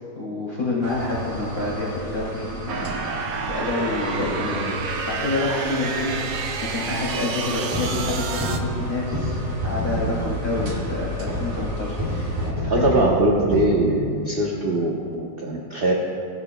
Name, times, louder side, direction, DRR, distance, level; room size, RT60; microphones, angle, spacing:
voice 1, 0.1-2.9 3.5-6.3 6.6-13.0, left 2 dB, 30° left, -7 dB, 2.7 m, -28 dB
sound 1, 0.8-12.5, right 1 dB, 55° right, 2.2 m, -35 dB
sound 2, 2.7-8.6, right 5 dB, 70° right, 1.4 m, -30 dB
sound 3, 7.7-13.7, equal, 10° right, 2.2 m, -28 dB
voice 2, 12.7-15.9, right 2 dB, 40° right, -2 dB, 0.9 m, -21 dB
18.0 x 11.0 x 2.2 m, 2.6 s
omnidirectional pair, 2.0 m